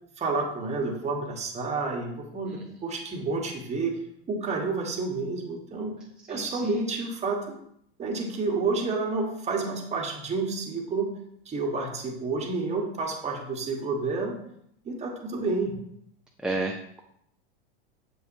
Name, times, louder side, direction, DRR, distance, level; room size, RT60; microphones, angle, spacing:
voice 1, 0.2-3.9 4.3-6.0 6.3-7.6 8.0-11.2 11.4-14.4 14.8-15.8, right 3 dB, 20° right, 1 dB, 1.3 m, -30 dB
voice 2, 6.3-6.7 16.4-17.0, right 2 dB, 5° right, 0 dB, 0.5 m, -32 dB
7.4 x 5.5 x 2.7 m, 0.72 s
hypercardioid pair, 115°, 29 cm